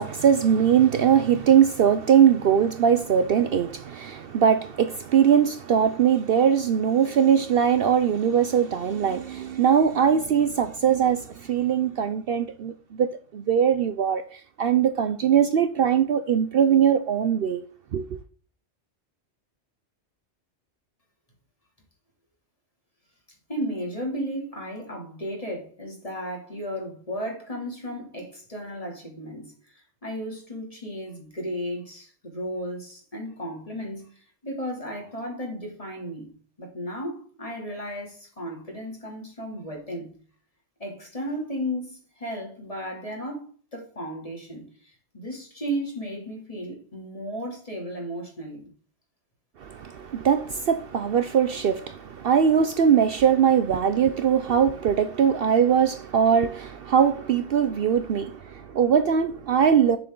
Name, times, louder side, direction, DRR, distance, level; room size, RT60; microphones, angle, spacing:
voice 1, 0.0-12.7 13.0-13.1 13.3-17.6 17.9-18.0 49.6-60.0, right 8 dB, 60° right, 0.8 m, -21 dB
voice 2, 23.5-36.3 36.6-40.1 40.8-48.7, equal, 30° left, 2.9 m, -34 dB
7.2 x 6.9 x 3.8 m
omnidirectional pair, 1.2 m